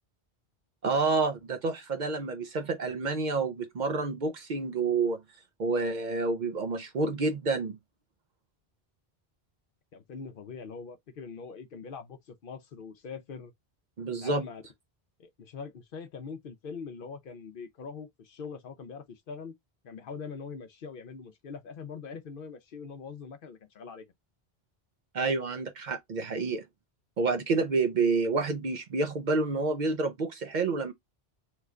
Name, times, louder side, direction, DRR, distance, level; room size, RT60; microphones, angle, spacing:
voice 1, 0.8-5.2 5.6-7.8 14.0-14.4 25.1-26.6 27.2-30.9, right 3 dB, 55° right, 0.6 m, -29 dB
voice 2, 9.9-13.5 14.1-14.6 15.2-19.5 19.8-24.0, left 5 dB, 65° left, 0.8 m, -42 dB
3.1 x 2.2 x 3.5 m
omnidirectional pair, 1.0 m